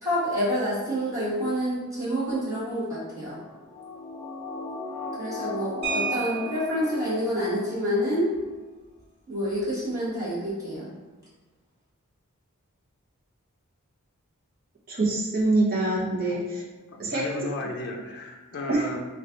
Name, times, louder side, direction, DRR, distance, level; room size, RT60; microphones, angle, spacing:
voice 1, 0.0-3.4 5.2-8.3 9.3-10.9, equal, 15° right, -11 dB, 1.4 m, -28 dB
sound 1, 3.3-8.1 8.4-8.5, left 3 dB, 30° left, 1.2 m, -37 dB
sound 2, 5.8-6.9 8.3-8.5 8.8-9.0 9.4-9.7, right 5 dB, 80° right, 1.2 m, -32 dB
voice 2, 14.9-16.6 17.0-17.2 18.7-18.9, right 2 dB, 40° right, -5 dB, 0.9 m, -24 dB
voice 3, 16.9-19.1, left 2 dB, 50° left, 1 dB, 0.4 m, -34 dB
3.1 x 2.4 x 3.7 m, 1.3 s
head